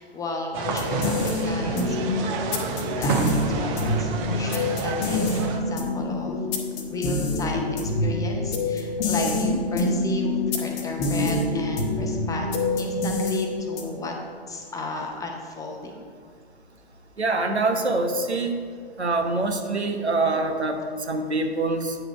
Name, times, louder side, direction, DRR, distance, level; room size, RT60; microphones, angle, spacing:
voice 1, 0.0-6.5 6.9-14.1 14.5-16.1, left 3 dB, 10° left, 1 dB, 0.7 m, -34 dB
sound 1, 0.5-5.6, right 5 dB, 30° right, 0.8 m, -29 dB
sound 2, 0.6-14.1, left 2 dB, 30° left, 1.0 m, -26 dB
voice 2, 9.2-9.6 17.2-18.6 19.0-22.0, right 2 dB, 85° right, 4 dB, 1.1 m, -25 dB
8.7 x 4.9 x 5.4 m, 2.1 s
figure-of-eight pair, 110°, 32 cm